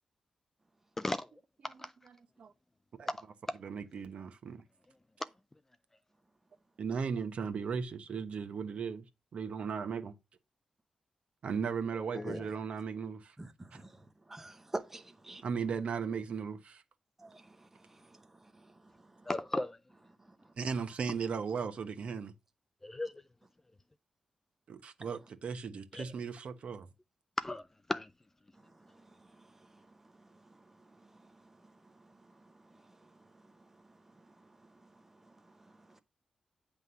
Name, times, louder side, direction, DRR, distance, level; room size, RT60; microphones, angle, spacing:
voice 1, 1.0-1.3 1.8-1.9 3.5-3.6 12.1-12.4 19.3-19.8 22.8-23.1 25.9-26.1 27.4-28.1, left 2 dB, 15° left, 0.4 m, -35 dB
voice 2, 1.6-2.5 3.0-4.6 6.8-9.0 9.3-10.1 11.4-13.3 15.4-16.8 20.6-22.3 24.7-26.9, right 6 dB, 55° right, 1.1 m, -37 dB
voice 3, 14.3-15.4 17.2-17.4, right 2 dB, 15° right, 0.8 m, -42 dB
9.6 x 3.5 x 5.6 m
wide cardioid pair, 175°, 2 cm